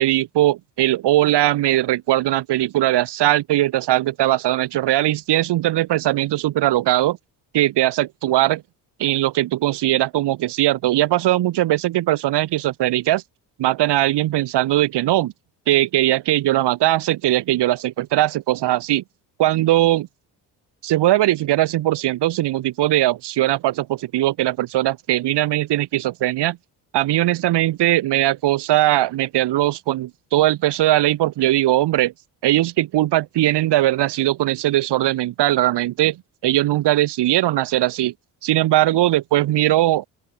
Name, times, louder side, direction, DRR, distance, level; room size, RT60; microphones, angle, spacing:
voice 1, 0.0-7.2 7.5-8.6 9.0-13.2 13.6-15.3 15.7-19.0 19.4-20.1 20.8-26.6 26.9-32.1 32.4-38.1 38.4-40.1, right 15 dB, 80° right, 3.5 m, -20 dB
open air
cardioid pair, 90°, 40 cm